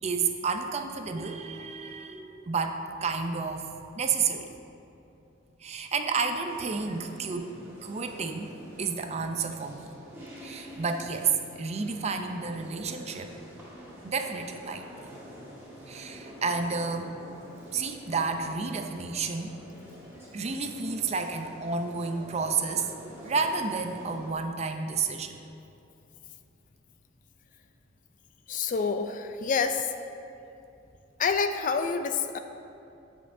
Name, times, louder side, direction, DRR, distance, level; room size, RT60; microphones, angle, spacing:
voice 1, 0.0-3.7 4.0-4.5 5.6-7.5 7.8-9.9 10.4-13.4 14.0-14.8 15.9-17.2 17.7-19.6 19.9-25.4, right 5 dB, 35° right, 6 dB, 0.5 m, -31 dB
sound 1, 6.5-24.3, equal, 15° right, 1.6 m, -47 dB
voice 2, 28.5-29.9 31.2-32.4, left 5 dB, 40° left, 8 dB, 0.4 m, -27 dB
14.5 x 5.3 x 2.6 m, 2.8 s
head